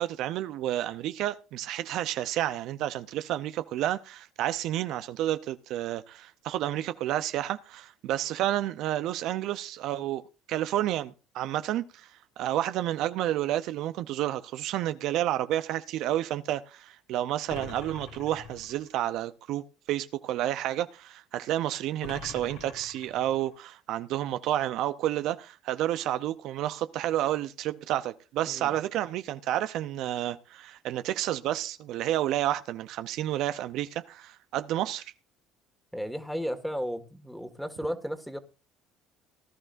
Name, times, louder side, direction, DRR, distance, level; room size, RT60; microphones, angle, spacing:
voice 1, 0.0-10.2 10.5-12.1 12.4-35.0, right 13 dB, 70° right, 0.6 m, -30 dB
sound 1, 17.5-18.9 22.0-23.5, left 4 dB, 85° left, 5.2 m, -44 dB
voice 2, 28.5-28.8 35.9-38.4, equal, ahead, 1.8 m, -34 dB
18.5 x 11.0 x 2.6 m
supercardioid pair, 80°, 0 cm